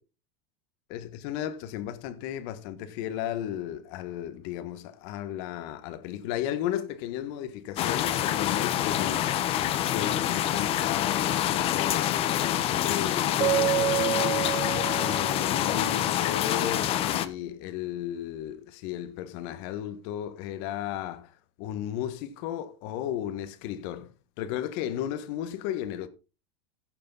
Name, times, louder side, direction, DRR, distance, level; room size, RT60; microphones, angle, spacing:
voice 1, 0.9-21.3 21.6-26.1, left 11 dB, 60° left, 1.5 m, -35 dB
sound 1, 7.8-17.3, left 11 dB, 40° left, 1.0 m, -26 dB
Keyboard (musical), 13.4-15.8, right 16 dB, 25° right, 0.6 m, -28 dB
15.0 x 6.7 x 4.0 m
supercardioid pair, 130°, 15 cm